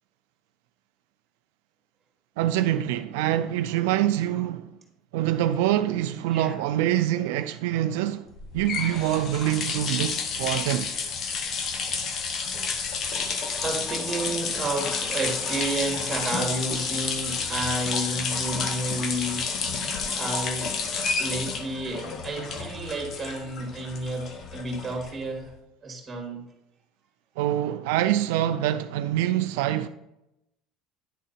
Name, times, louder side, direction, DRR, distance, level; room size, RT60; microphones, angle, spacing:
voice 1, 2.4-4.7 5.1-8.3 8.5-10.9 27.4-29.9, right 12 dB, 90° right, 0.3 m, -25 dB
sound 1, 8.3-25.4, left 5 dB, 45° left, 0.9 m, -30 dB
voice 2, 13.6-19.5 20.1-20.7 21.2-25.5 25.8-26.5, right 2 dB, 20° right, 2.3 m, -31 dB
10.0 x 3.7 x 4.2 m
cardioid pair, 120°, 0 cm